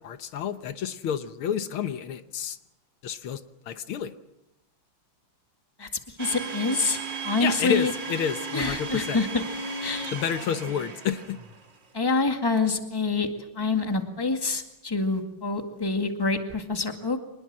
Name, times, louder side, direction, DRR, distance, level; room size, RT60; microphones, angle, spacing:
voice 1, 0.0-2.6 3.0-3.4 3.7-4.1 7.4-9.2 10.1-11.4, left 8 dB, 75° left, 11 dB, 1.9 m, -30 dB
voice 2, 6.2-7.9 8.5-9.4 9.8-10.1 11.9-13.3 13.5-17.2, left 3 dB, 10° left, 6 dB, 1.9 m, -26 dB
Domestic sounds home sounds, 6.2-11.7, right 4 dB, 55° right, 4.0 m, -35 dB
25.5 x 21.0 x 7.6 m, 0.88 s
omnidirectional pair, 2.3 m